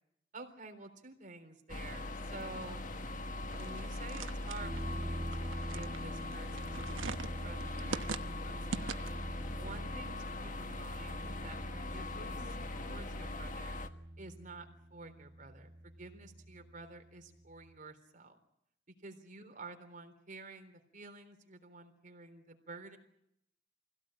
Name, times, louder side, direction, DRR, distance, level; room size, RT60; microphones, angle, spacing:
voice 1, 0.3-2.8 3.6-5.3 5.7-6.7 7.0-9.1 9.6-12.6 12.8-13.8 14.2-18.4 18.9-23.0, right 3 dB, 45° right, 5 dB, 3.7 m, -50 dB
sound 1, 1.7-13.9, left 2 dB, 40° left, 1.5 m, -41 dB
sound 2, 3.5-9.3, right 4 dB, 90° right, 1.0 m, -43 dB
sound 3, 4.6-17.7, equal, 20° right, 4.0 m, -47 dB
25.5 x 17.0 x 8.8 m, 0.75 s
head